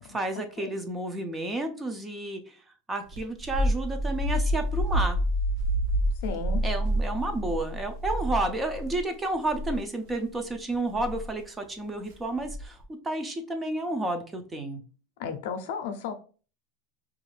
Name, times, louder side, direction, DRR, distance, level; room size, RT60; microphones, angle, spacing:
voice 1, 0.0-2.6 2.9-5.2 6.6-14.8, right 2 dB, 10° right, 0.4 m, -31 dB
sound 1, 3.1-9.0 9.4-9.8 10.9-11.2 12.4-12.8, equal, 50° right, 0.7 m, -28 dB
voice 2, 6.2-6.6 15.2-16.1, left 6 dB, 70° left, 0.5 m, -34 dB
3.0 x 2.4 x 3.2 m
supercardioid pair, 165°, 0 cm